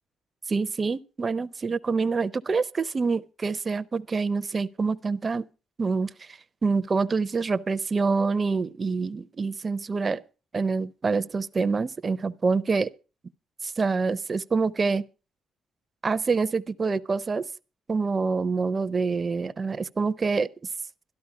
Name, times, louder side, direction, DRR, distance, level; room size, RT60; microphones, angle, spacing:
voice 1, 0.5-5.5 5.8-10.2 10.5-12.9 13.6-15.0 16.0-17.5 17.9-20.5, right 4 dB, 35° right, 0.6 m, -26 dB
12.5 x 12.0 x 4.8 m
cardioid pair, 90°, 0 cm